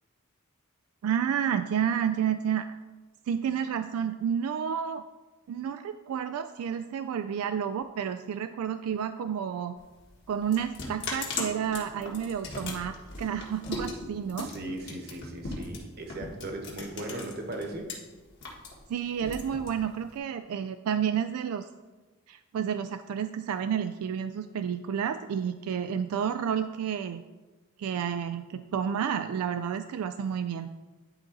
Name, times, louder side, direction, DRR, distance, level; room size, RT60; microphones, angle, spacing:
voice 1, 1.0-2.7 3.3-5.0 5.5-9.8 10.3-14.5 18.9-21.7 22.3-27.2 27.8-30.7, right 8 dB, 85° right, 9 dB, 0.3 m, -30 dB
sound 1, 9.8-17.9 18.3-20.2, left 3 dB, 55° left, 1.6 m, -38 dB
voice 2, 14.4-17.9, right 1 dB, 45° right, 3 dB, 1.1 m, -38 dB
10.5 x 4.0 x 3.9 m, 1.2 s
head